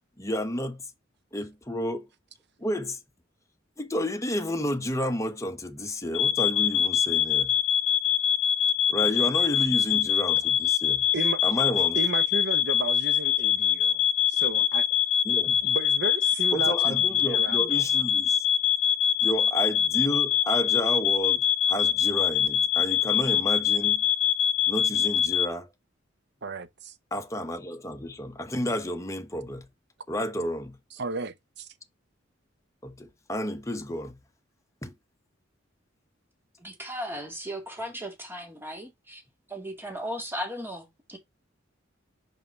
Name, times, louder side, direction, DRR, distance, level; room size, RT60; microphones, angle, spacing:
voice 1, 0.2-0.9 1.3-2.1 2.6-3.0 3.8-7.5 8.9-11.0 11.4-12.0 15.2-15.7 16.5-18.5 19.2-24.0 24.7-25.7 27.1-29.7 30.1-30.8 32.8-34.2 34.8-34.9, equal, 15° left, 1.1 m, -31 dB
sound 1, 6.1-25.5, left 9 dB, 75° left, 0.9 m, -24 dB
voice 2, 11.9-14.0 14.3-14.8 15.5-17.8 26.4-26.9 31.0-31.7, right 3 dB, 60° right, 0.9 m, -34 dB
voice 3, 36.6-39.2 39.5-41.2, equal, 10° right, 2.2 m, -36 dB
5.7 x 5.4 x 4.5 m
head